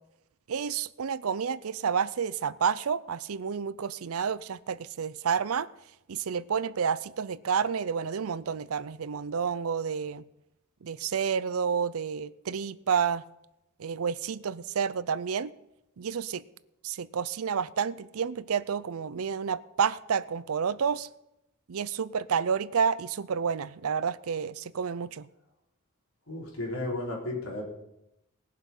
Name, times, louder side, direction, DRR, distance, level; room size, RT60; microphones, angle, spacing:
voice 1, 0.5-5.7 6.1-10.2 10.8-13.2 13.8-15.5 16.0-16.4 16.8-21.1 21.7-25.3, right 6 dB, 90° right, 0.5 m, -30 dB
voice 2, 26.3-27.6, left 2 dB, 80° left, 4.0 m, -33 dB
19.5 x 7.5 x 5.5 m
head